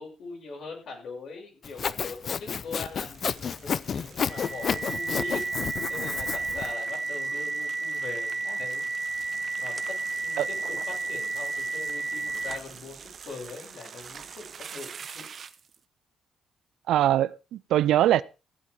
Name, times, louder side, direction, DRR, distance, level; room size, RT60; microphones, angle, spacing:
voice 1, 0.0-5.4 5.9-8.9 9.6-10.0 10.2-15.3, left 4 dB, 65° left, 6.6 m, -41 dB
Sawing, 1.6-6.7, left 6 dB, 50° left, 0.6 m, -31 dB
sound 1, 2.8-15.8, right 6 dB, 50° right, 1.1 m, -47 dB
sound 2, 4.3-12.8, right 3 dB, 20° right, 0.9 m, -32 dB
voice 2, 16.9-18.2, right 12 dB, 80° right, 0.5 m, -22 dB
14.5 x 8.3 x 4.7 m
cardioid pair, 90°, 0 cm